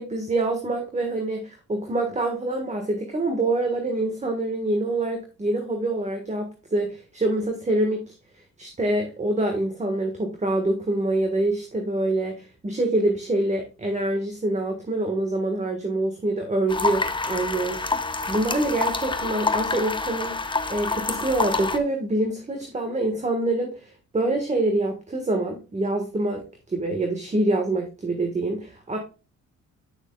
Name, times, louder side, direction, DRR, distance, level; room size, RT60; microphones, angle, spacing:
voice 1, 0.0-8.1 8.6-26.4 26.7-29.0, right 2 dB, 25° right, 4 dB, 1.6 m, -26 dB
sound 1, 16.7-21.8, left 3 dB, 15° left, 0.9 m, -27 dB
9.2 x 6.3 x 2.3 m, 0.32 s
cardioid pair, 90°, 30 cm